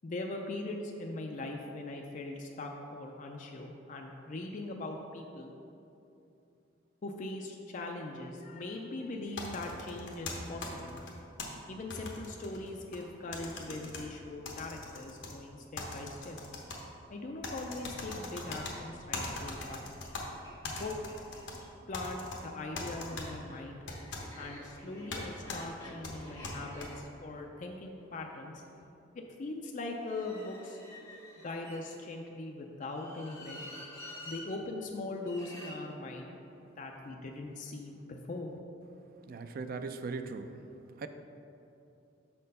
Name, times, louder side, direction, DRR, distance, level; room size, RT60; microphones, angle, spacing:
voice 1, 0.0-5.5 7.0-11.0 11.7-16.4 17.1-19.8 20.6-20.9 21.9-23.9 24.3-28.6 29.1-30.8 31.4-33.8 34.3-36.3 36.8-38.5, left 2 dB, 40° left, 1 dB, 0.4 m, -41 dB
sound 1, 9.4-11.5 11.9-13.0 13.3-14.0 14.5-15.3 15.8-16.8 17.4-18.7 19.1-20.2 20.6-21.6 21.9-22.4 22.8-23.3 23.9-24.2 25.1-25.2 25.5-25.6 26.0-26.9, left 3 dB, 65° left, 1.0 m, -40 dB
sound 2, 20.0-20.1 20.4-20.5 20.8-21.7 22.6-28.8 29.9-32.2 32.9-34.4 35.2-35.8, left 1 dB, 15° left, 1.0 m, -50 dB
voice 2, 39.3-40.6 41.0-41.1, right 4 dB, 50° right, 8 dB, 0.3 m, -39 dB
6.4 x 4.3 x 5.3 m, 2.8 s
head